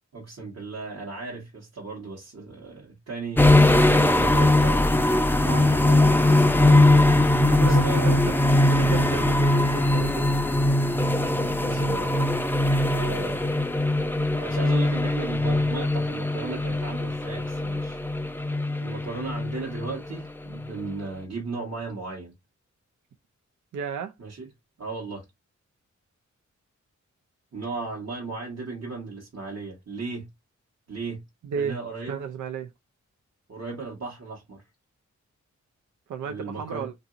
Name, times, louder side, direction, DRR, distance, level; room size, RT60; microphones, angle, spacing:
voice 1, 0.1-7.1 7.6-8.2 11.6-12.2 12.9-13.5 14.4-18.0 18.8-22.3 24.2-24.5 24.8-25.2 27.5-30.3 30.9-31.2 31.6-32.2 33.5-34.6 36.2-36.9, right 3 dB, 55° right, 1.2 m, -36 dB
sound 1, 3.4-20.2 20.5-20.7, left 1 dB, 5° left, 0.5 m, -21 dB
voice 2, 7.5-8.2 8.7-10.3 12.1-12.4 23.7-24.1 31.4-31.8 32.1-32.7 36.1-36.9, right 6 dB, 80° right, 0.5 m, -33 dB
2.8 x 2.6 x 2.4 m
cardioid pair, 50°, 30 cm